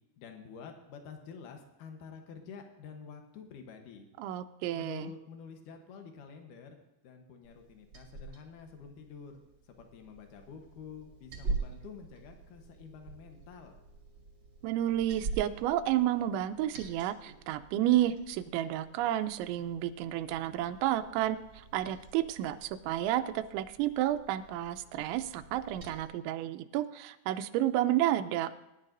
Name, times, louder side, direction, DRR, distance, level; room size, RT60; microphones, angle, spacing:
voice 1, 0.2-4.1 4.7-9.4 9.8-13.8, left 6 dB, 85° left, 4 dB, 1.8 m, -48 dB
voice 2, 4.2-5.1 14.6-21.4 21.7-28.5, right 13 dB, 85° right, 11 dB, 2.9 m, -31 dB
Liquid, 7.4-26.0, right 4 dB, 50° right, 1.3 m, -45 dB
20.5 x 10.5 x 2.6 m, 0.92 s
omnidirectional pair, 5.3 m